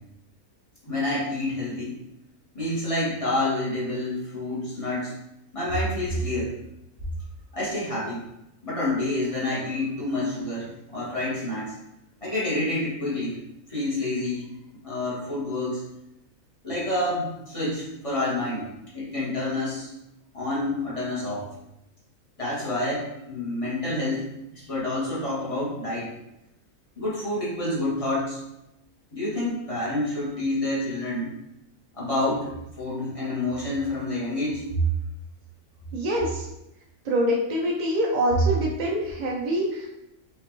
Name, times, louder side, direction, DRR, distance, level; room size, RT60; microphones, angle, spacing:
voice 1, 0.8-2.0 2.5-5.1 5.5-6.5 7.5-8.2 8.6-11.7 12.2-13.4 13.7-14.4 14.8-15.8 16.6-19.9 20.3-21.5 22.4-26.1 27.0-28.4 29.1-31.3 31.9-34.8, left 1 dB, 25° left, -8 dB, 1.6 m, -28 dB
voice 2, 35.9-36.5 37.1-39.9, equal, 45° right, -3 dB, 0.6 m, -25 dB
5.3 x 2.9 x 3.1 m, 0.87 s
omnidirectional pair, 1.4 m